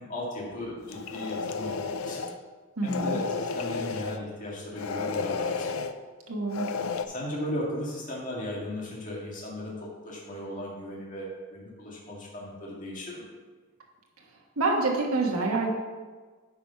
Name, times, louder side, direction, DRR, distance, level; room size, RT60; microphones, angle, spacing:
voice 1, 0.0-2.3 2.8-5.7 7.1-13.2, left 1 dB, 35° left, -4 dB, 1.9 m, -36 dB
sound 1, 0.9-2.4 2.8-4.2 4.8-5.9 6.5-7.0, left 5 dB, 75° left, 0.5 m, -32 dB
voice 2, 2.8-3.2 6.3-6.7 14.6-15.7, right 3 dB, 85° right, -1 dB, 1.3 m, -26 dB
9.4 x 4.7 x 5.6 m, 1.4 s
head